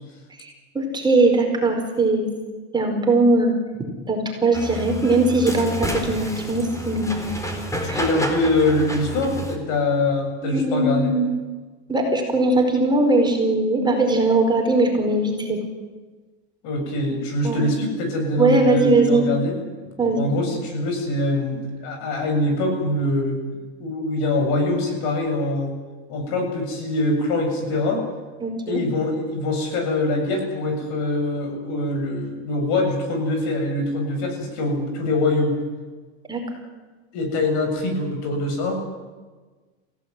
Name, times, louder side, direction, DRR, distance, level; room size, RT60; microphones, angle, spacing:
voice 1, 0.4-2.2 2.7-3.5 4.1-7.3 7.9-8.0 10.4-11.3 11.9-15.6 17.4-17.7 18.4-19.3 20.0-20.3 28.4-28.8 36.3-36.4, right 2 dB, 15° right, 2 dB, 4.9 m, -20 dB
sound 1, 4.5-9.6, equal, 10° left, 4.1 m, -29 dB
voice 2, 7.8-11.1 16.6-19.6 20.2-23.4 23.8-25.8 26.1-28.0 28.7-35.6 37.1-38.8, left 2 dB, 60° left, 5 dB, 7.2 m, -23 dB
27.0 x 16.5 x 9.4 m, 1.3 s
supercardioid pair, 130°, 33 cm